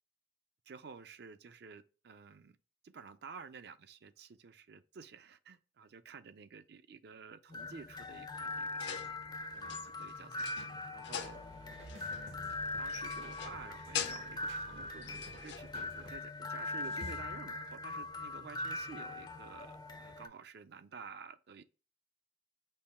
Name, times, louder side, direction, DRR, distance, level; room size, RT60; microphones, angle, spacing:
voice 1, 0.7-2.6 2.8-8.8 9.5-10.5 10.9-11.4 12.1-21.6, right 5 dB, 60° right, 0.5 m, -51 dB
sound 1, 7.5-20.3, left 2 dB, 25° left, 0.4 m, -42 dB
sound 2, 8.8-9.3 9.6-11.5 11.9-12.2 12.5-12.6 12.9-13.7 13.9-14.5 15.0-15.7 17.0-17.6, left 8 dB, 70° left, 0.6 m, -43 dB
sound 3, 11.2-16.2 16.7-17.2, right 1 dB, 85° right, 1.6 m, -54 dB
5.4 x 2.3 x 4.2 m
head